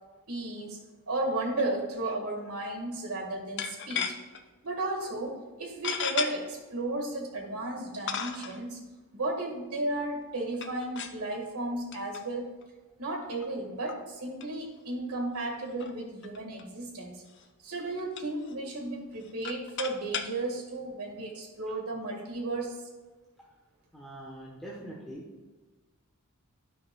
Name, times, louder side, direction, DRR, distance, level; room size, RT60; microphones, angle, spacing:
voice 1, 0.3-0.8 1.1-4.1 4.6-8.8 9.1-12.5 13.0-17.2 17.6-22.8, right 2 dB, 85° right, 1 dB, 1.7 m, -34 dB
sound 1, 1.6-1.8 2.0-2.2 3.6-4.4 5.0-5.1 5.8-6.3 7.2-7.3 8.1-8.6 10.5-11.2 11.9-12.2 12.6-12.7 13.4-13.5 13.9-14.0 14.4-14.5 14.8-14.9 15.1-15.2 15.7-16.6 17.3-17.5 17.7-18.6 19.1-20.3, left 7 dB, 55° left, 0.5 m, -35 dB
voice 2, 23.9-25.3, right 1 dB, ahead, -5 dB, 1.0 m, -43 dB
11.5 x 5.5 x 2.3 m, 1.2 s
head